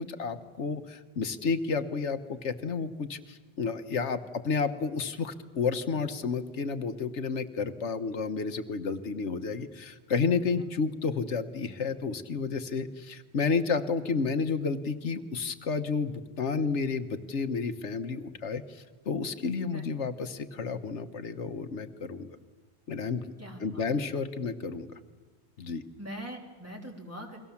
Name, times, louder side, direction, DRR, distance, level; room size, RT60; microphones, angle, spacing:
voice 1, 0.0-22.3 22.9-23.3 23.6-24.9 25.6-25.8, left 5 dB, 90° left, 9 dB, 1.4 m, -31 dB
voice 2, 23.4-23.9 26.0-27.4, equal, 10° right, 0 dB, 3.7 m, -42 dB
29.5 x 22.5 x 7.3 m, 1.3 s
omnidirectional pair, 1.2 m